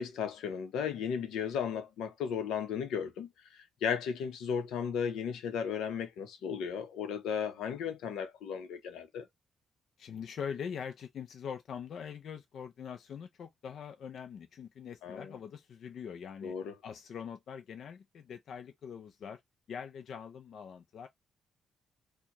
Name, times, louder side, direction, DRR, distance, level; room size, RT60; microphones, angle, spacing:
voice 1, 0.0-9.3 15.0-15.3 16.4-16.7, left 7 dB, 85° left, 0.8 m, -35 dB
voice 2, 10.0-16.6 16.8-19.4 19.7-21.1, left 7 dB, 60° left, 0.5 m, -43 dB
4.4 x 2.3 x 2.9 m
cardioid pair, 90°, 0 cm